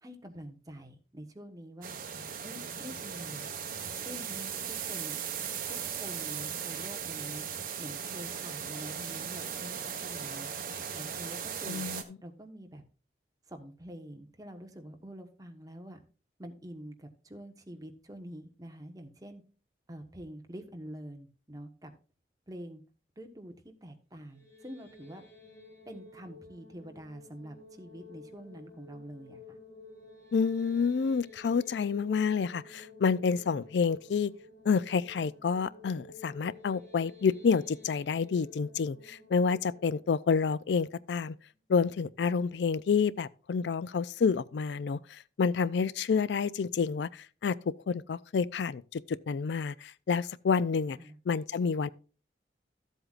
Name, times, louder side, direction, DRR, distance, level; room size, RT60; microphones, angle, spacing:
voice 1, 0.0-2.0 2.4-3.5 4.0-5.2 5.7-7.4 7.8-10.5 10.9-11.8 12.2-12.8 13.5-16.0 16.4-19.4 19.9-21.9 22.5-22.8 23.2-25.2 25.8-29.6 51.0-51.2, equal, 20° right, 1.2 m, -46 dB
sound 1, 1.8-12.0, right 7 dB, 50° right, 1.2 m, -38 dB
voice 2, 11.7-12.0 30.3-34.3 34.7-41.4 41.7-47.6 47.9-51.0 51.3-51.9, left 5 dB, 80° left, 0.4 m, -29 dB
sound 2, 24.2-41.3, left 3 dB, 20° left, 5.5 m, -53 dB
14.0 x 7.9 x 2.4 m
head